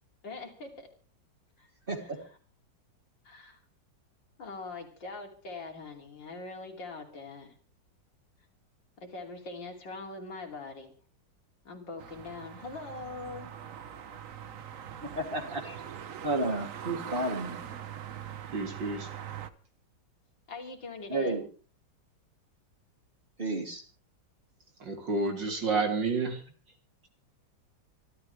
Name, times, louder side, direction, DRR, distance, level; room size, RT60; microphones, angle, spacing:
voice 1, 0.2-0.9 1.6-1.7 2.0-2.3 3.2-3.6 4.4-7.5 9.0-10.9 11.7-13.5 20.5-21.4, left 3 dB, 85° left, 2 dB, 3.7 m, -42 dB
sound 1, 12.0-19.5, right 9 dB, 55° right, 1.2 m, -42 dB
voice 2, 15.0-15.7 16.2-17.6 21.1-21.4 23.4-23.8, right 2 dB, 30° right, 3 dB, 3.2 m, -32 dB
voice 3, 18.5-19.1 24.8-26.4, right 3 dB, 75° right, 3 dB, 3.9 m, -30 dB
25.5 x 12.5 x 3.4 m, 0.38 s
omnidirectional pair, 2.0 m